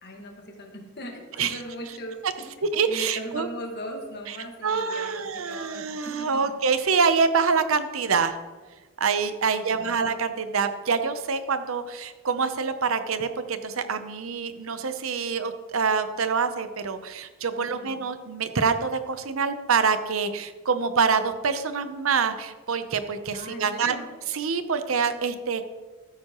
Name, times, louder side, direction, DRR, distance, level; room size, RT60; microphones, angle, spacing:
voice 1, 0.0-2.5 2.9-6.3 9.5-10.0 17.6-17.9 23.3-24.1, equal, 50° left, 2 dB, 1.7 m, -39 dB
voice 2, 2.7-3.5 4.6-8.4 9.0-24.0 24.3-25.6, right 5 dB, 75° right, 10 dB, 0.7 m, -26 dB
13.5 x 9.3 x 3.0 m, 1.3 s
head